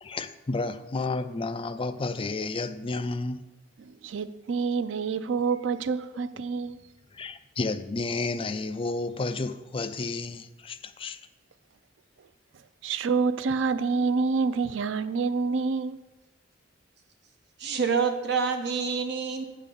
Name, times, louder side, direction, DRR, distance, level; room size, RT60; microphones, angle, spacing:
voice 1, 0.0-3.4 7.1-11.2, left 3 dB, 30° left, 0.4 m, -31 dB
voice 2, 3.8-6.8 12.8-16.0, right 5 dB, 80° right, 0.4 m, -27 dB
voice 3, 17.6-19.4, right 5 dB, 60° right, 1.1 m, -27 dB
9.0 x 3.7 x 6.9 m
head